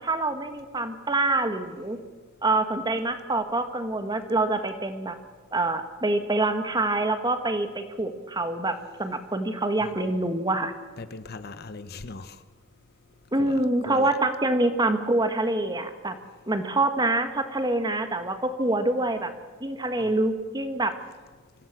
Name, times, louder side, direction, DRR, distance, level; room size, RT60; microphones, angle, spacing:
voice 1, 0.0-2.0 2.4-5.1 5.5-10.7 13.3-16.1 16.5-19.3 19.6-20.9, right 2 dB, 20° right, 8 dB, 1.6 m, -26 dB
voice 2, 11.0-12.4 13.4-13.6 13.9-14.1, left 3 dB, 50° left, 12 dB, 0.9 m, -39 dB
24.5 x 15.5 x 7.5 m, 1.4 s
head